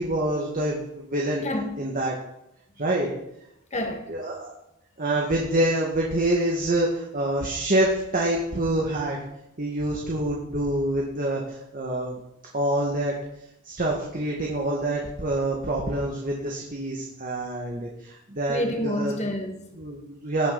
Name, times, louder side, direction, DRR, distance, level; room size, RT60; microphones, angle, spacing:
voice 1, 0.0-1.4 1.8-2.1 2.8-3.1 4.1-4.5 5.0-9.2 9.6-12.2 12.5-13.1 13.6-19.1 19.8-20.5, right 1 dB, 45° right, 2.0 m, -26 dB
voice 2, 1.4-1.8 3.7-4.1 18.5-19.8, left 1 dB, 35° left, 2.0 m, -29 dB
17.5 x 10.0 x 4.2 m
head